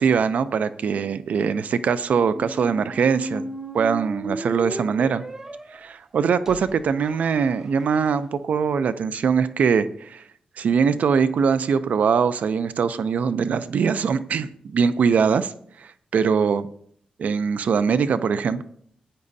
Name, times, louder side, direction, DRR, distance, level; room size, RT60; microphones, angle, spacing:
voice 1, 0.0-3.5 3.7-5.2 5.7-10.2 10.6-15.5 15.8-16.7 17.2-18.6, right 6 dB, 70° right, 13 dB, 0.5 m, -22 dB
sound 1, 2.2-8.1, right 1 dB, 20° right, 0.8 m, -35 dB
16.0 x 9.8 x 2.7 m, 0.63 s
cardioid pair, 100°, 3 cm